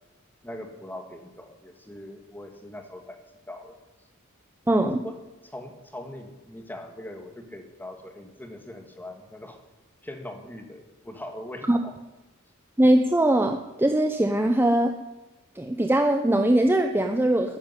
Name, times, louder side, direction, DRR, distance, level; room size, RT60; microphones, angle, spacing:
voice 1, 0.4-3.2 3.5-3.8 5.0-9.6 10.0-11.9, left 1 dB, 10° left, 5 dB, 2.0 m, -41 dB
voice 2, 4.7-5.0 11.7-11.8 12.8-15.0 15.6-17.6, right 1 dB, 10° right, 5 dB, 0.7 m, -21 dB
13.5 x 10.5 x 9.9 m, 1.0 s
head